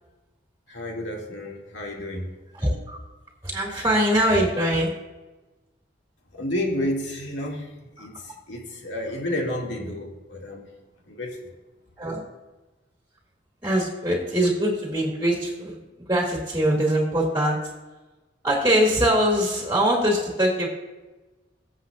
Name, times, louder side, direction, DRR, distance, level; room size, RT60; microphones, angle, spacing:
voice 1, 0.7-2.3 6.3-10.7 11.1-11.5, left 1 dB, 75° left, -1 dB, 2.3 m, -31 dB
voice 2, 2.5-3.0 3.4-5.0 8.0-8.1 12.0-12.2 13.6-17.6 18.4-20.7, equal, 15° right, -2 dB, 2.2 m, -22 dB
22.5 x 7.7 x 2.5 m, 1.1 s
head